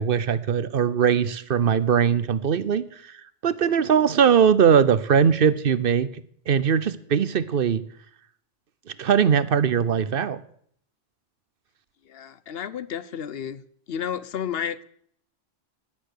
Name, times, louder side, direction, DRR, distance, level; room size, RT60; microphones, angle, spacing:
voice 1, 0.0-2.8 3.4-6.1 6.5-7.8 9.0-10.4, right 7 dB, 60° right, 0.9 m, -20 dB
voice 2, 12.0-13.6 13.9-14.8, left 8 dB, 65° left, 0.9 m, -31 dB
16.5 x 10.5 x 6.6 m
omnidirectional pair, 1.1 m